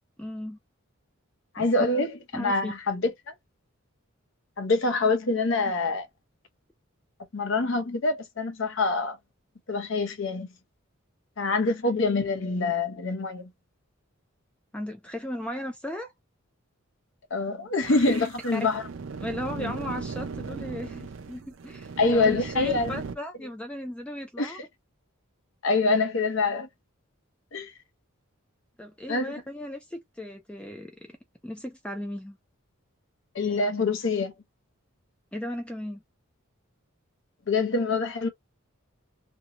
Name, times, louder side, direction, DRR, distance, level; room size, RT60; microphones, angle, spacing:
voice 1, 0.2-0.6 1.6-1.7 2.3-2.7 14.7-16.1 18.5-18.7 19.2-24.6 28.8-31.2 31.4-32.4 35.3-36.0, equal, 5° left, 0.3 m, -36 dB
voice 2, 1.5-3.3 4.6-6.1 7.3-9.2 9.7-10.5 11.4-13.5 17.3-18.8 19.6-19.7 22.0-22.9 24.4-24.6 25.6-26.7 27.5-27.7 29.1-29.3 33.3-34.3 37.5-38.3, left 3 dB, 60° left, 0.7 m, -25 dB
sound 1, 17.8-23.1, right 5 dB, 60° right, 0.4 m, -37 dB
2.6 x 2.1 x 2.8 m
head